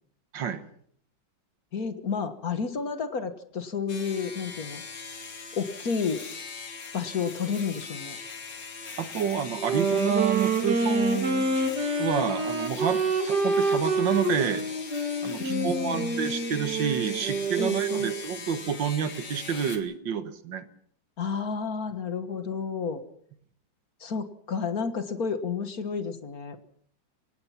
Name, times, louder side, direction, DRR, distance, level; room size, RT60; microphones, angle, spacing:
voice 1, 1.7-4.8 5.5-6.2 6.9-8.2 15.4-16.2 17.6-18.1 21.2-23.0 24.0-26.6, left 5 dB, 55° left, 9 dB, 2.0 m, -31 dB
sound 1, 3.9-19.8, left 5 dB, 80° left, 2.7 m, -41 dB
voice 2, 9.0-11.5 12.0-14.7 15.2-20.6, right 7 dB, 85° right, 11 dB, 2.0 m, -29 dB
Wind instrument woodwind instrument, 9.6-18.2, right 3 dB, 65° right, 2.8 m, -27 dB
24.0 x 18.5 x 5.9 m, 0.65 s
omnidirectional pair, 1.9 m